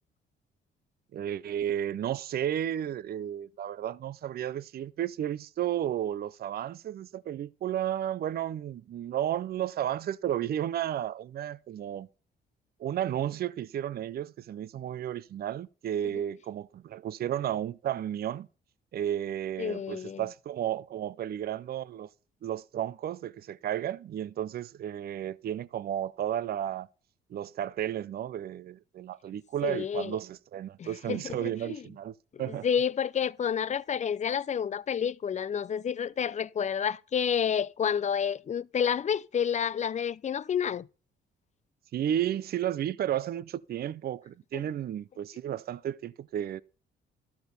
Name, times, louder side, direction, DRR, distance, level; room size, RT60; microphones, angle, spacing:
voice 1, 1.1-12.1 12.8-18.5 18.9-22.1 22.4-26.9 27.3-32.7 41.9-46.6, right 11 dB, 50° right, 0.5 m, -33 dB
voice 2, 19.6-20.2 29.6-30.2 30.8-31.8 32.3-40.9, left 8 dB, 35° left, 0.5 m, -30 dB
12.5 x 4.4 x 6.5 m
cardioid pair, 90°, 20 cm